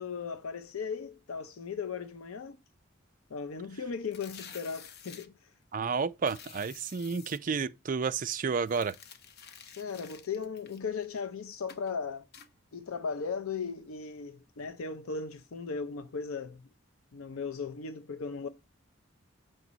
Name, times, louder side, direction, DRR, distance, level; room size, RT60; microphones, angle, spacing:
voice 1, 0.0-2.6 3.3-5.5 9.8-12.3 12.7-16.7 17.1-18.5, left 5 dB, 85° left, 0.5 m, -37 dB
sound 1, 4.0-5.3 6.2-7.4 8.6-11.3 11.7-11.9 12.3-12.5, left 7 dB, 50° left, 0.7 m, -50 dB
voice 2, 5.7-9.0, right 5 dB, 40° right, 0.4 m, -31 dB
7.7 x 4.0 x 6.1 m
head